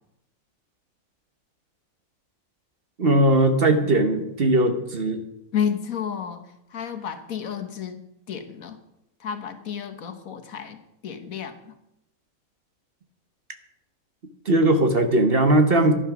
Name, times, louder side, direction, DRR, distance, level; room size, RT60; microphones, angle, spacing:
voice 1, 3.0-5.2 14.5-15.9, right 1 dB, 45° right, 7 dB, 1.2 m, -19 dB
voice 2, 5.5-6.4 6.7-8.0 8.3-8.8 9.2-11.7, left 8 dB, 70° left, 7 dB, 1.6 m, -31 dB
11.5 x 11.0 x 6.0 m, 0.86 s
omnidirectional pair, 1.5 m